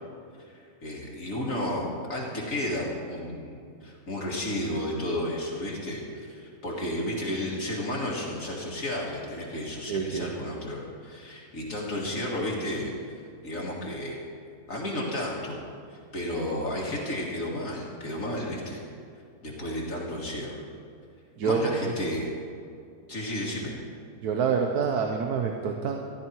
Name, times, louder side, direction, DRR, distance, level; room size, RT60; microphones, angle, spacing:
voice 1, 0.5-12.9 13.4-14.2 14.7-15.6 16.1-18.8 19.4-20.5 21.4-22.3 23.1-23.7, left 1 dB, 55° left, -4 dB, 2.3 m, -32 dB
voice 2, 9.9-10.4 21.4-21.9 24.2-26.0, right 6 dB, 75° right, 3 dB, 1.4 m, -27 dB
14.5 x 12.0 x 4.6 m, 2.5 s
omnidirectional pair, 1.7 m